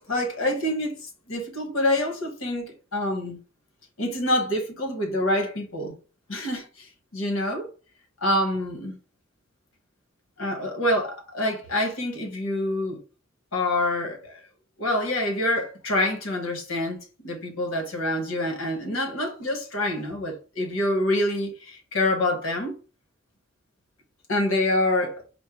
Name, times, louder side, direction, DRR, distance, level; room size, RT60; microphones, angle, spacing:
voice 1, 0.1-3.4 4.0-5.9 6.3-6.9 7.1-7.7 8.2-9.0 10.4-13.0 13.5-14.4 14.8-17.0 17.2-22.7 24.3-25.2, left 1 dB, 90° left, 1.3 m, -26 dB
4.5 x 2.2 x 4.7 m
head